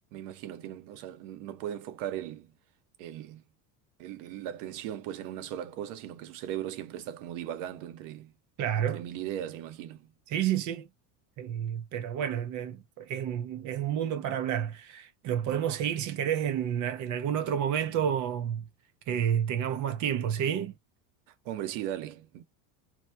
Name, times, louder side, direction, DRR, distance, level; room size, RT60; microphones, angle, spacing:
voice 1, 0.1-2.5 3.0-3.4 4.0-8.3 8.8-10.1 21.3-22.4, right 11 dB, 70° right, 0.9 m, -38 dB
voice 2, 8.6-9.0 10.3-10.9 11.4-18.6 19.1-20.7, right 9 dB, 45° right, 0.6 m, -30 dB
3.0 x 2.2 x 3.3 m
supercardioid pair, 130°, 42 cm